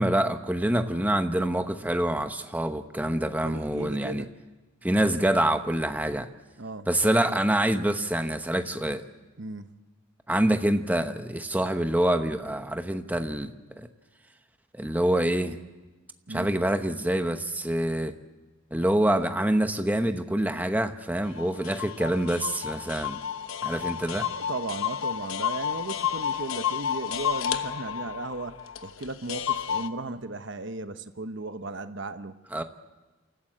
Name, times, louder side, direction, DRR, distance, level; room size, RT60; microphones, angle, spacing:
voice 1, 0.0-4.2 4.8-6.3 6.9-9.0 10.3-13.9 14.7-15.6 16.3-18.1 18.7-23.2 23.6-24.3 32.5-32.6, right 1 dB, 10° right, 7 dB, 0.9 m, -26 dB
voice 2, 3.4-4.4 6.6-6.9 9.4-9.7 16.3-16.5 24.3-32.4, right 2 dB, 60° right, 10 dB, 1.0 m, -36 dB
sound 1, 21.4-29.9, left 9 dB, 80° left, 1.0 m, -31 dB
28.0 x 14.0 x 7.8 m, 1.2 s
head